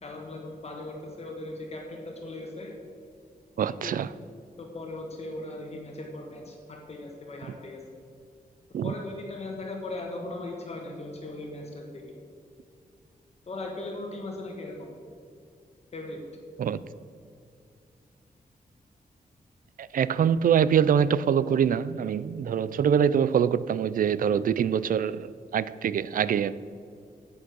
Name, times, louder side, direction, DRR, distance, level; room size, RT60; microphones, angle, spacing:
voice 1, 0.0-2.7 3.6-4.1 4.6-7.8 8.8-12.0 13.5-14.9 15.9-16.2, left 2 dB, 45° left, 1.4 m, -38 dB
voice 2, 3.6-4.1 8.7-8.9 16.6-16.8 19.8-26.6, right 8 dB, 65° right, 0.4 m, -24 dB
9.9 x 8.6 x 6.2 m
wide cardioid pair, 150°, 16 cm